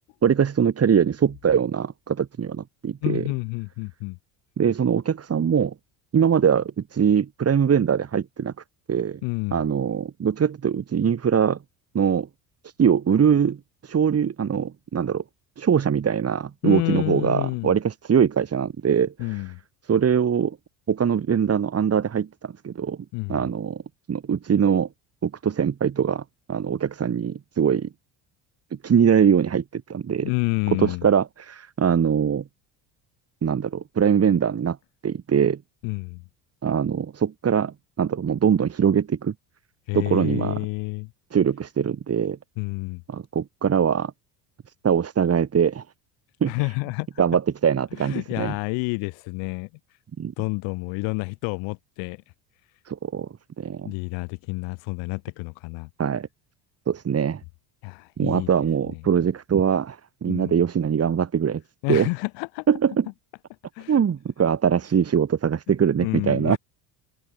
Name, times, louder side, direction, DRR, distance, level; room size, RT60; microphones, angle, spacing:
voice 1, 0.2-3.2 4.6-5.7 6.1-8.5 8.9-9.2 9.5-11.6 11.9-12.3 12.6-13.6 13.8-15.2 15.6-19.4 19.9-20.6 20.9-23.0 23.3-23.8 24.1-24.9 25.2-27.9 28.8-30.3 30.8-32.5 33.4-34.8 35.0-35.6 36.6-39.3 39.9-40.6 41.3-42.4 43.1-44.1 44.8-45.8 46.4-46.5 47.2-48.5 50.2-50.3 52.9-53.3 53.6-53.9 56.0-56.3 56.9-57.4 58.2-61.6 61.9-62.1 62.7-63.0 63.9-66.6, right 7 dB, 35° right, 2.9 m, -22 dB
voice 2, 3.0-4.2 9.2-9.6 16.6-17.8 19.2-19.6 23.1-23.4 30.2-31.1 35.8-36.2 39.9-41.1 42.6-43.0 46.5-47.2 47.9-49.7 50.4-52.2 53.8-55.9 57.8-58.5 58.9-59.0 60.3-60.6 61.8-62.7 63.7-64.0 66.0-66.6, left 31 dB, 80° left, 4.5 m, -29 dB
open air
supercardioid pair, 105°, 44 cm